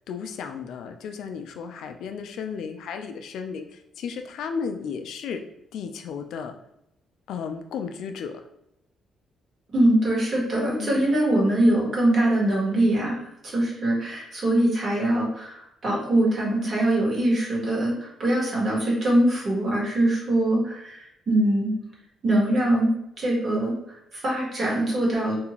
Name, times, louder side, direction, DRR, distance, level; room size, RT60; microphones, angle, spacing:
voice 1, 0.1-5.4 5.7-6.5 7.3-8.4 10.8-11.1 20.0-20.1, left 6 dB, 80° left, 6 dB, 0.3 m, -34 dB
voice 2, 9.7-21.7 22.2-22.9 23.2-23.7 24.1-25.4, right 1 dB, 50° right, -4 dB, 1.3 m, -23 dB
2.6 x 2.4 x 2.9 m, 0.80 s
cardioid pair, 90°, 0 cm